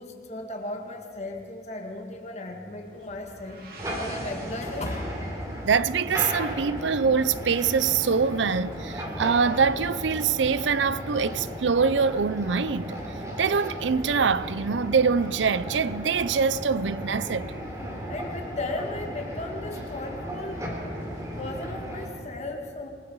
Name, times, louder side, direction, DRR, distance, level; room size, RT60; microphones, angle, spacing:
voice 1, 0.0-3.6 4.0-5.2 18.1-20.8 21.3-22.9, left 2 dB, 35° left, 2.1 m, -36 dB
sound 1, 2.8-21.7, left 1 dB, 55° left, 5.5 m, -53 dB
sound 2, 3.0-6.8, right 2 dB, 55° right, 3.3 m, -49 dB
sound 3, 3.8-22.1, equal, 20° right, 3.4 m, -35 dB
voice 2, 5.6-13.0 13.4-17.5, right 5 dB, 85° right, 0.6 m, -24 dB
28.0 x 19.5 x 4.8 m
head